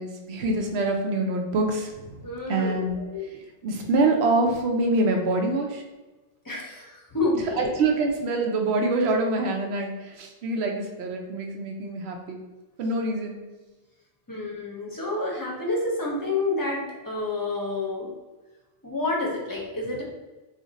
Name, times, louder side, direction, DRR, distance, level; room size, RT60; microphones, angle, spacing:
voice 1, 0.0-2.2 2.5-2.9 3.3-5.8 7.5-12.4 12.8-13.4, right 2 dB, 85° right, 2 dB, 0.9 m, -25 dB
voice 2, 2.2-3.3 3.7-3.8 6.4-7.7 14.3-18.1 18.8-20.0, left 2 dB, 25° left, -3 dB, 0.6 m, -29 dB
2.5 x 2.5 x 3.9 m, 1.2 s
omnidirectional pair, 1.0 m